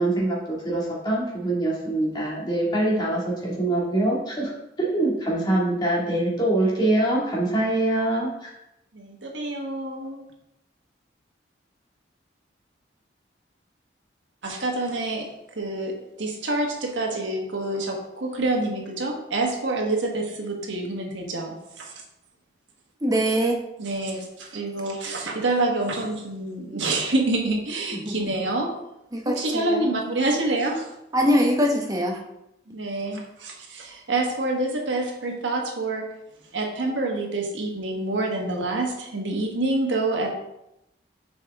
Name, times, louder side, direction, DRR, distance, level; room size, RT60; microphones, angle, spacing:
voice 1, 0.0-4.5 4.8-8.5, right 1 dB, 25° left, -5 dB, 1.9 m, -24 dB
voice 2, 8.9-10.3 14.4-15.3 15.6-21.9 23.8-28.7 29.2-30.8 32.7-36.1 36.5-40.3, right 2 dB, 85° right, 1 dB, 1.3 m, -27 dB
voice 3, 23.0-23.6 27.9-28.3 29.1-29.9 31.1-32.2, equal, 20° right, 1 dB, 0.8 m, -23 dB
6.8 x 5.0 x 3.5 m, 0.86 s
head